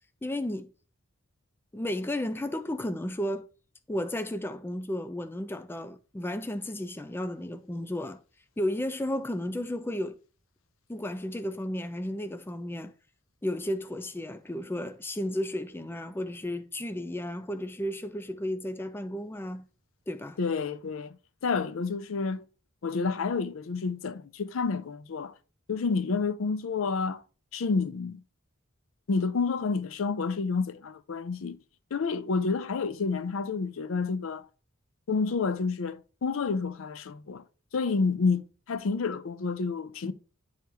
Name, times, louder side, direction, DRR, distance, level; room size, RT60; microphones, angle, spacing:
voice 1, 0.2-0.7 1.7-3.5 3.9-8.2 8.6-10.2 10.9-12.9 13.4-19.7 20.1-20.4, left 1 dB, 10° left, 0.4 m, -33 dB
voice 2, 20.4-21.2 21.4-22.4 22.8-25.3 25.7-27.2 27.5-28.2 29.1-31.6 31.9-34.5 35.1-37.4 37.7-40.1, left 4 dB, 75° left, 0.5 m, -29 dB
10.5 x 3.7 x 3.0 m
head